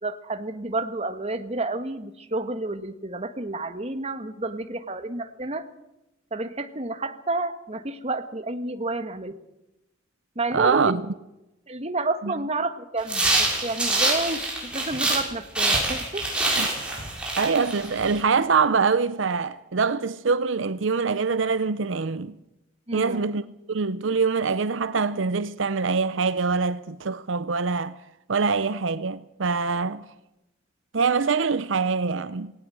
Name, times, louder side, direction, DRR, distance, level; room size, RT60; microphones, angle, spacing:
voice 1, 0.0-5.7 6.3-9.4 10.3-10.9 11.7-14.4 14.7-16.6 22.9-23.3, right 2 dB, 35° right, 1.6 m, -30 dB
voice 2, 10.5-11.0 12.2-12.3 16.6-16.7 17.4-22.4 22.9-28.0 28.3-30.1 30.9-32.5, right 5 dB, 75° right, 0.7 m, -24 dB
sound 1, 13.0-15.3 15.5-18.1, right 2 dB, 5° right, 6.6 m, -25 dB
19.5 x 18.0 x 7.8 m
head